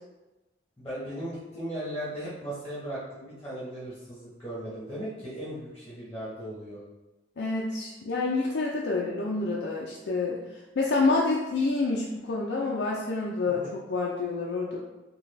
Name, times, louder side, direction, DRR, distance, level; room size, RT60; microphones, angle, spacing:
voice 1, 0.8-6.8 13.5-13.7, right 1 dB, 10° left, -9 dB, 1.0 m, -37 dB
voice 2, 7.4-10.4 10.8-13.6 13.9-14.8, left 3 dB, 70° left, -4 dB, 0.4 m, -28 dB
3.9 x 2.3 x 3.2 m, 1.1 s
head